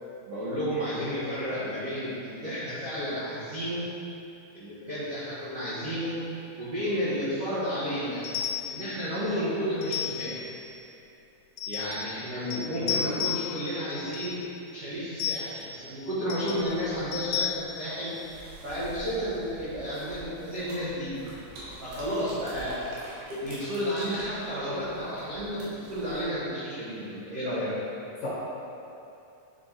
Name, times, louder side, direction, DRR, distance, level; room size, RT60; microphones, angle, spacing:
voice 1, 0.3-3.8 4.5-6.1 6.6-8.2 8.6-10.3 11.7-14.4 14.7-18.1 18.6-21.1 21.8-27.7, equal, 65° right, -13 dB, 1.5 m, -32 dB
sound 1, 8.2-8.8 9.8-10.5 11.6-12.2 12.5-13.6 13.9-14.4 15.2-15.8 16.3-16.7 17.1-17.5, left 9 dB, 90° left, 2.8 m, -33 dB
voice 2, 12.3-13.0 28.2-28.3, left 3 dB, 65° left, -9 dB, 2.8 m, -35 dB
sound 2, 16.5-26.2, right 1 dB, 80° right, 3.5 m, -47 dB
10.0 x 4.8 x 2.9 m, 2.7 s
omnidirectional pair, 4.8 m